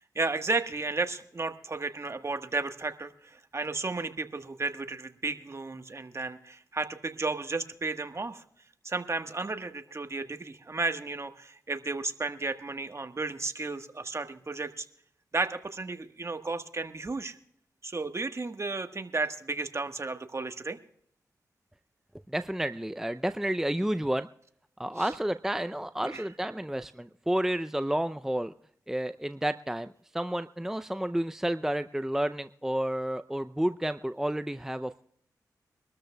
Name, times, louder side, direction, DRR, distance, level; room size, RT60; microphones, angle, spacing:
voice 1, 0.1-8.4 8.8-14.9 15.3-17.4 17.8-20.8 25.0-25.2 26.0-26.3, right 3 dB, 40° right, 8 dB, 1.3 m, -33 dB
voice 2, 22.3-24.3 24.8-28.5 28.9-35.0, right 1 dB, 5° right, 11 dB, 0.5 m, -31 dB
24.5 x 13.0 x 2.3 m, 0.68 s
cardioid pair, 45°, 7 cm